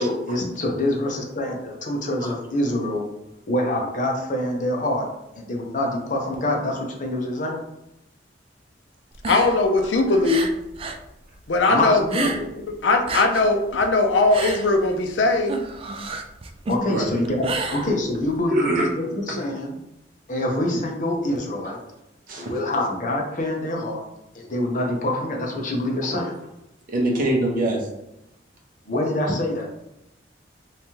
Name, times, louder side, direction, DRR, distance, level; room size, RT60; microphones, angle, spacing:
voice 1, 0.0-3.0 3.5-5.1 5.4-7.6 11.7-12.5 16.7-19.8 20.3-21.8 22.4-24.0 24.3-26.3 28.9-29.7, left 1 dB, 45° left, 0 dB, 0.8 m, -25 dB
sound 1, 9.1-11.1 11.3-12.7 12.9-18.4, right 3 dB, 30° right, 0.3 m, -31 dB
voice 2, 9.3-10.5 11.5-12.0 12.8-15.5, left 3 dB, 80° left, 5 dB, 0.5 m, -19 dB
voice 3, 18.5-18.9 22.3-22.5 26.1-26.2 26.9-27.9, right 1 dB, 50° right, -1 dB, 0.9 m, -23 dB
3.5 x 3.3 x 2.9 m, 0.89 s
head